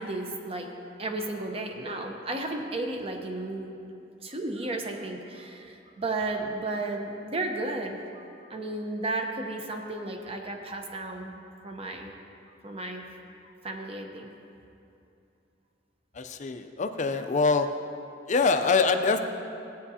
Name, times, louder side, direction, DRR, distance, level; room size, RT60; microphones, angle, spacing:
voice 1, 0.0-3.7 4.2-8.2 8.5-12.1 12.6-13.0 13.6-14.3, right 2 dB, 30° right, 3 dB, 0.9 m, -34 dB
voice 2, 16.1-17.7 18.3-19.2, left 4 dB, 40° left, 7 dB, 0.5 m, -24 dB
16.0 x 9.1 x 2.8 m, 2.7 s
head